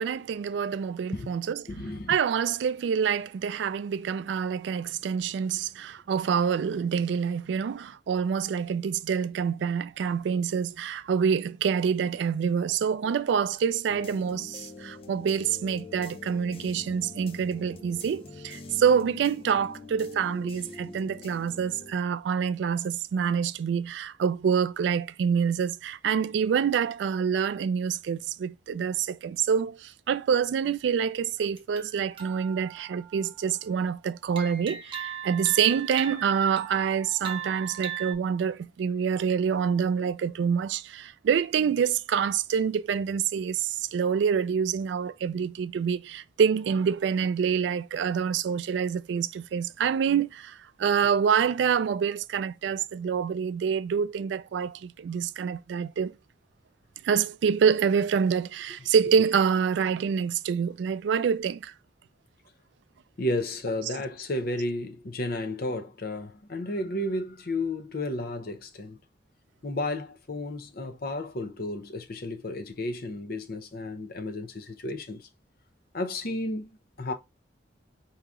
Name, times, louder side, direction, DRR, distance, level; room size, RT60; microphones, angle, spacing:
voice 1, 0.0-1.6 2.1-56.1 57.0-61.7, right 7 dB, 75° right, 0.3 m, -26 dB
voice 2, 1.7-2.2 63.2-69.0 69.6-75.3 75.9-77.1, left 1 dB, 55° left, 0.7 m, -32 dB
sound 1, 13.9-21.9, left 3 dB, 30° left, 0.4 m, -44 dB
sound 2, 31.6-33.8 34.4-38.1, right 9 dB, 30° right, 1.1 m, -39 dB
4.8 x 2.9 x 3.6 m
head